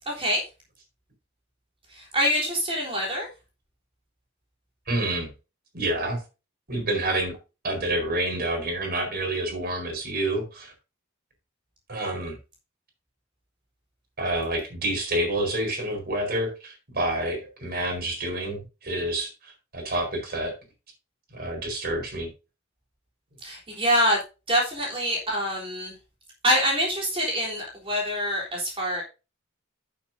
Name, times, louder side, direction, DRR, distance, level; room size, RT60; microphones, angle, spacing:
voice 1, 0.1-0.4 1.9-3.3 23.4-24.2 24.5-25.9 26.4-29.0, equal, 25° right, -2 dB, 3.6 m, -25 dB
voice 2, 4.9-5.3 5.7-6.2 6.7-7.3 7.6-10.7 11.9-12.4 14.2-20.5 21.3-22.3, right 1 dB, 50° right, 4 dB, 4.3 m, -28 dB
12.0 x 7.3 x 2.6 m, 0.29 s
head